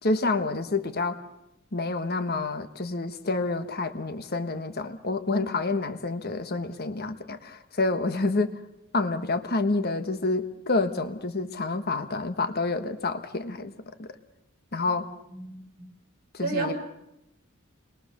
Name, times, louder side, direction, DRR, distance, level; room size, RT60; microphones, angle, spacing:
voice 1, 0.0-1.2 1.7-8.6 8.9-13.7 14.0-14.1 14.7-15.1 16.3-16.7, left 3 dB, 50° left, 9 dB, 1.4 m, -28 dB
voice 2, 15.3-15.9 16.4-16.7, right 3 dB, 45° right, 3 dB, 6.9 m, -31 dB
29.0 x 22.0 x 6.7 m, 0.86 s
head